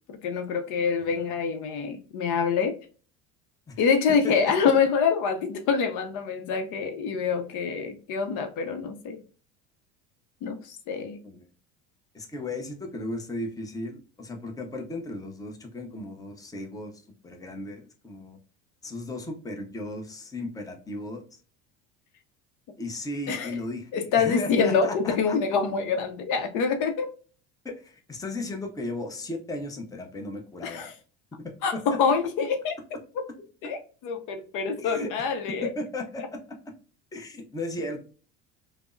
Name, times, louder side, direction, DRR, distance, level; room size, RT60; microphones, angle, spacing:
voice 1, 0.1-2.7 3.8-9.2 10.4-11.2 23.3-23.5 23.9-27.1 30.6-30.9 31.6-32.7 33.6-35.7, left 5 dB, 60° left, 0.6 m, -26 dB
voice 2, 4.2-4.7 11.2-11.5 12.1-16.9 17.2-18.4 18.8-21.2 22.8-25.4 27.6-30.9 31.7-31.8 34.8-35.1 35.6-36.4 37.1-38.0, left 2 dB, 10° left, 0.6 m, -35 dB
3.3 x 2.0 x 2.4 m
supercardioid pair, 95°, 34 cm